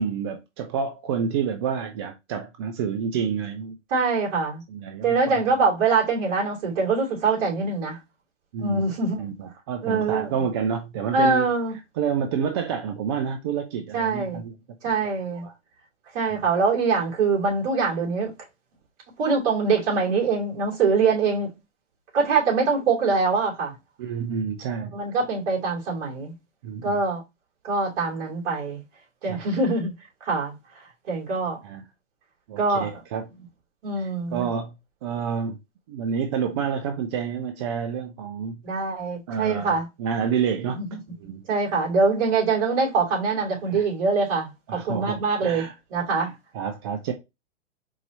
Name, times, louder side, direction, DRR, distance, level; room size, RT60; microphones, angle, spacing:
voice 1, 0.0-3.8 4.7-5.4 8.5-8.8 9.2-11.5 12.0-14.5 15.4-15.5 24.0-24.9 26.6-27.0 29.2-29.4 31.6-31.8 32.5-33.3 34.0-34.7 35.0-35.6 35.9-38.6 39.3-40.9 41.2-41.4 43.7-43.8 44.7-45.7 46.2-47.1, right 7 dB, 25° right, 0.3 m, -29 dB
voice 2, 3.9-4.6 5.0-8.0 8.6-9.2 9.8-10.3 11.1-11.7 13.9-14.4 14.8-15.4 16.1-18.3 19.2-21.5 22.1-23.7 24.9-26.3 26.8-27.2 27.6-28.8 29.2-29.9 30.2-31.6 32.6-33.0 33.8-34.5 38.6-39.9 40.7-41.0 41.5-45.6 45.9-46.3, right 4 dB, 45° right, 2.9 m, -24 dB
4.6 x 2.8 x 4.0 m
hypercardioid pair, 130°, 37 cm